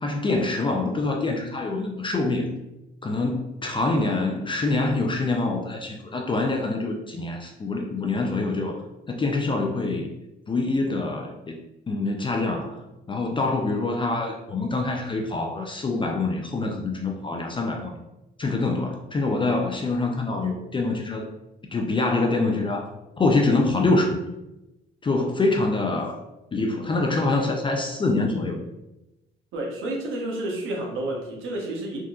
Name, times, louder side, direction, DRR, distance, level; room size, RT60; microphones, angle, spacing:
voice 1, 0.0-2.5 3.0-8.8 9.1-10.1 10.5-11.6 11.9-12.8 13.1-17.9 18.4-21.3 21.7-22.9 23.2-24.3 25.0-26.2 26.5-28.6, left 2 dB, 25° left, 2 dB, 0.4 m, -25 dB
voice 2, 29.5-32.0, right 1 dB, 85° right, -1 dB, 0.9 m, -30 dB
3.6 x 2.6 x 2.4 m, 0.94 s
cardioid pair, 90°, 20 cm